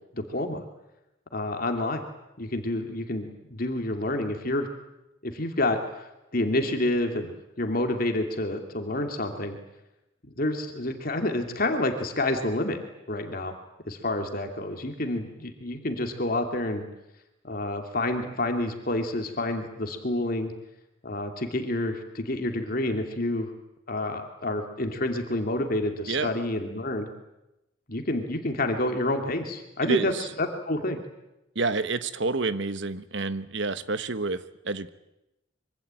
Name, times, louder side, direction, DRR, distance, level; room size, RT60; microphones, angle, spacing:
voice 1, 0.1-0.6 1.3-2.1 2.4-4.7 5.2-7.3 7.6-9.6 10.4-12.8 13.1-13.5 13.9-16.9 17.4-20.5 21.0-23.5 23.9-27.1 27.9-30.1 30.4-31.0, left 1 dB, 45° left, 4 dB, 2.7 m, -28 dB
voice 2, 29.8-30.3 31.5-34.9, right 3 dB, 60° right, 13 dB, 1.2 m, -28 dB
25.0 x 24.5 x 9.0 m, 0.92 s
head